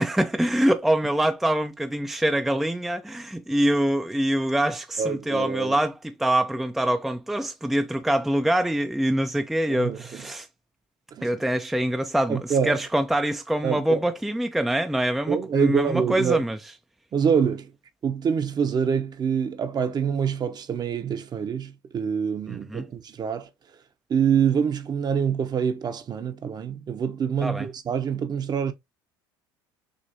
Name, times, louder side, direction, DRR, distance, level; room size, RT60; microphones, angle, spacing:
voice 1, 0.0-10.5 11.2-16.6 22.5-22.8 27.4-27.7, right 1 dB, ahead, 0.4 m, -24 dB
voice 2, 5.0-5.8 9.7-10.3 11.1-11.4 12.3-12.8 13.6-14.0 15.3-16.4 17.1-17.7 18.0-23.5 24.1-28.7, right 7 dB, 35° right, 0.8 m, -26 dB
6.5 x 2.8 x 2.7 m
hypercardioid pair, 75°, 11 cm